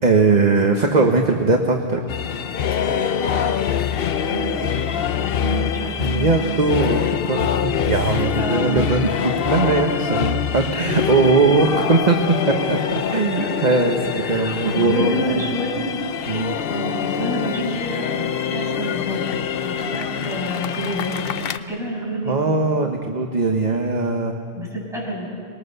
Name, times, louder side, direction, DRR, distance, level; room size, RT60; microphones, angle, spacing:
voice 1, 0.0-2.0 6.0-12.2 12.5-15.2 16.3-16.6 22.2-24.4, right 3 dB, 40° right, 2 dB, 1.3 m, -20 dB
sound 1, 2.1-21.6, left 8 dB, 60° left, 0.9 m, -24 dB
voice 2, 4.1-6.4 6.9-7.1 8.4-8.9 11.0-11.2 13.3-13.4 14.1-15.9 16.7-19.3 19.6-21.3 21.7-22.4 24.6-25.3, right 1 dB, ahead, -4 dB, 6.5 m, -28 dB
25.0 x 20.5 x 6.8 m, 2.5 s
omnidirectional pair, 1.1 m